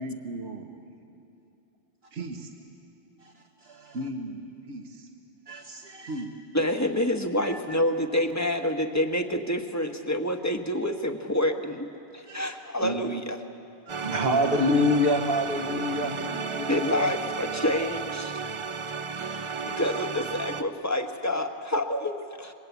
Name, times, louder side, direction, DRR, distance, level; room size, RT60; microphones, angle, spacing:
voice 1, 0.0-1.2 2.1-2.5 3.9-5.1 6.1-6.4 12.8-13.2 14.3-14.6 15.9-16.6, right 2 dB, 70° right, 3 dB, 1.8 m, -37 dB
voice 2, 3.6-4.0 5.5-6.1 7.4-7.6 12.3-12.5 13.9-16.2 16.6-17.1 18.6-18.8, left 1 dB, 55° right, 0 dB, 1.5 m, -27 dB
voice 3, 6.5-11.9 12.1-13.4 16.7-18.4 19.2-22.5, left 1 dB, 15° left, 5 dB, 1.2 m, -28 dB
sound 1, 13.9-20.6, right 5 dB, 35° right, 0.5 m, -33 dB
26.5 x 21.5 x 8.3 m, 2.6 s
omnidirectional pair, 1.2 m